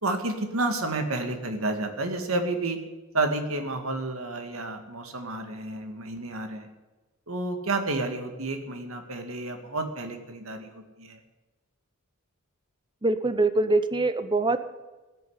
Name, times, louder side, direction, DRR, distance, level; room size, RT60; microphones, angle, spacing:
voice 1, 0.0-2.8 3.1-6.7 7.3-11.2, right 2 dB, 75° right, 6 dB, 2.1 m, -30 dB
voice 2, 13.0-14.6, right 2 dB, 20° right, 11 dB, 0.8 m, -23 dB
16.0 x 7.0 x 9.4 m, 1.2 s
head